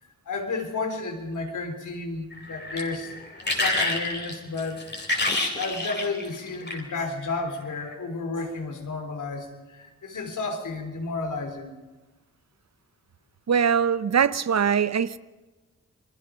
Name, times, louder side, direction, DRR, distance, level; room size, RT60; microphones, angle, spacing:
voice 1, 0.3-3.2 3.5-4.8 5.1-11.7, left 3 dB, 75° left, 5 dB, 3.6 m, -32 dB
sound 1, 2.3-7.0 7.7-7.9, left 2 dB, 35° left, 4.3 m, -28 dB
voice 2, 13.5-15.2, right 7 dB, 60° right, 16 dB, 0.8 m, -22 dB
28.5 x 20.5 x 5.2 m, 1.2 s
cardioid pair, 55°, 31 cm